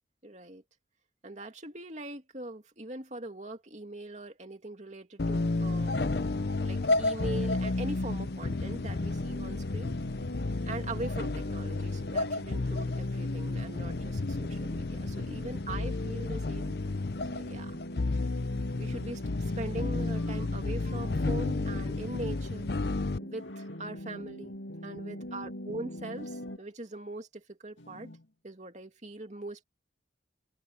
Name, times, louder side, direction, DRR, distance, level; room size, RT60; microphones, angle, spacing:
voice 1, 0.2-0.6 1.2-6.3 6.6-10.0 10.7-16.8 17.3-17.8 18.8-22.7 23.2-24.5 24.8-28.1 28.4-29.6, right 2 dB, 40° right, 2.6 m, -41 dB
sound 1, 5.2-23.2, left 2 dB, 55° left, 0.6 m, -32 dB
sound 2, 7.8-26.6, equal, 70° left, 6.7 m, -41 dB
sound 3, 15.8-16.3 17.0-17.5 20.2-21.4 21.8-22.4 23.4-23.9 26.2-26.7 27.8-28.3, left 1 dB, 90° left, 2.4 m, -49 dB
open air
head